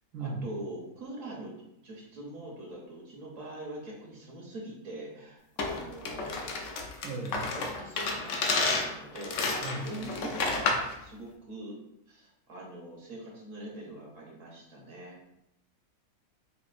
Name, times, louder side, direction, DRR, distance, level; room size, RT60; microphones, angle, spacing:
voice 1, 0.2-1.6 1.8-6.9 7.4-11.8 12.1-15.2, right 1 dB, 60° right, -2 dB, 1.2 m, -43 dB
sound 1, 5.6-10.9, left 3 dB, 65° left, 0.8 m, -31 dB
voice 2, 7.0-7.6 9.6-9.9, right 3 dB, 80° right, -3 dB, 1.1 m, -36 dB
5.1 x 2.5 x 2.4 m, 0.82 s
omnidirectional pair, 1.6 m